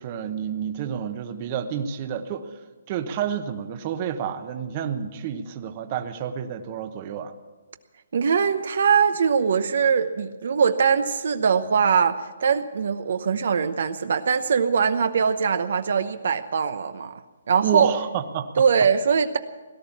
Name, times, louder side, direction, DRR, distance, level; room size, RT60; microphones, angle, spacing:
voice 1, 0.0-2.5 2.9-7.3 17.6-18.6, right 8 dB, 30° right, 8 dB, 1.0 m, -29 dB
voice 2, 8.1-17.2 17.5-17.9 18.6-19.4, right 6 dB, 60° right, 10 dB, 0.8 m, -22 dB
17.5 x 11.5 x 7.2 m, 1.3 s
hypercardioid pair, 160°, 0 cm